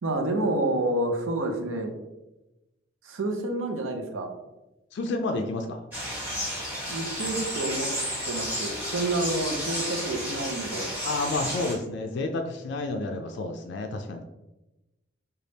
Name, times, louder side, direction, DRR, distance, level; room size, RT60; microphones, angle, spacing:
voice 1, 0.0-1.9 3.0-4.3 6.9-7.9 8.2-10.9, right 2 dB, 90° right, 4 dB, 0.6 m, -29 dB
voice 2, 4.9-5.8 11.0-14.2, left 2 dB, 60° left, 4 dB, 0.3 m, -30 dB
sound 1, 5.9-11.7, equal, 10° right, 1.2 m, -32 dB
3.4 x 2.3 x 3.9 m, 1.0 s
head